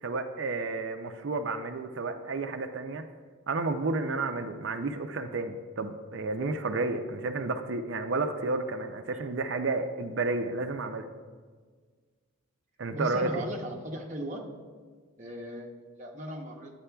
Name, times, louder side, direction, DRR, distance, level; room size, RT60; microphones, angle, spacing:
voice 1, 0.0-3.1 3.5-11.1 12.8-13.3, right 3 dB, 55° right, 7 dB, 0.4 m, -31 dB
voice 2, 12.9-14.5 15.2-16.7, right 1 dB, 35° right, 0 dB, 0.8 m, -37 dB
9.9 x 8.7 x 2.3 m, 1.5 s
head